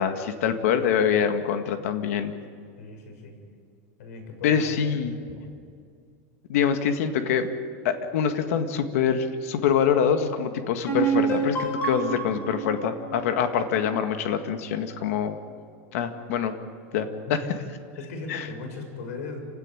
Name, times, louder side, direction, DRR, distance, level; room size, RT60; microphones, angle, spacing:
voice 1, 0.0-2.3 4.4-5.1 6.5-7.5 7.8-15.4 15.9-16.6 16.9-17.4 18.3-18.5, left 7 dB, 70° left, 7 dB, 2.0 m, -25 dB
voice 2, 2.8-3.3 4.0-4.7 5.3-5.4 17.4-17.7 18.0-19.4, left 3 dB, 85° left, 5 dB, 6.9 m, -37 dB
sound 1, 10.9-14.4, right 5 dB, 25° left, 6.4 m, -28 dB
28.0 x 17.5 x 10.0 m, 2.3 s
supercardioid pair, 175°, 8 cm